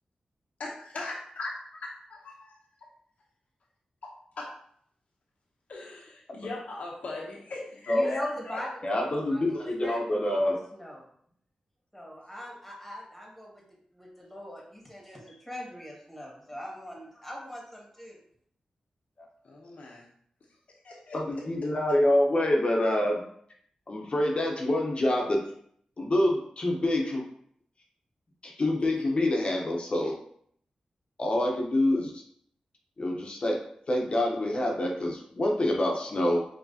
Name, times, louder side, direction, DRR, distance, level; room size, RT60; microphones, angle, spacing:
voice 1, 0.6-1.5 1.8-2.6 4.4-4.5 5.7-8.6 19.4-20.0 20.8-21.2, left 2 dB, 75° left, -2 dB, 0.8 m, -39 dB
voice 2, 7.9-9.4 9.8-11.1 11.9-18.2, left 1 dB, 5° left, -3 dB, 1.7 m, -41 dB
voice 3, 8.8-10.6 21.1-23.2 23.9-25.4 26.0-27.3 28.4-30.1 31.2-32.2 33.0-36.5, left 1 dB, 50° left, 0 dB, 0.8 m, -26 dB
4.8 x 2.9 x 2.8 m, 0.65 s
cardioid pair, 60°, 2 cm